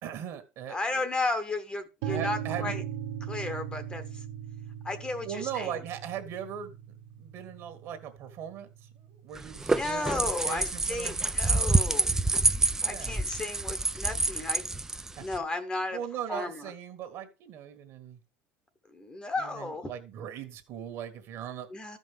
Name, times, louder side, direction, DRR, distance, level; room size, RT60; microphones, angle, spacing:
voice 1, 0.0-1.0 2.1-2.7 5.2-6.8 7.2-11.7 12.8-13.1 15.2-15.3 15.9-18.2 19.4-21.7, right 9 dB, 55° right, 7 dB, 1.5 m, -39 dB
voice 2, 0.7-2.8 3.2-4.2 4.8-5.7 9.7-12.1 12.8-14.6 15.2-16.0 16.3-16.7 18.9-19.9 21.7-22.0, left 2 dB, 15° left, 9 dB, 1.0 m, -34 dB
sound 1, 2.0-9.9, right 9 dB, 80° right, 0.9 m, -39 dB
sound 2, 9.4-15.4, right 2 dB, 10° right, 0.4 m, -27 dB
13.5 x 5.4 x 3.5 m, 0.29 s
cardioid pair, 140°, 6 cm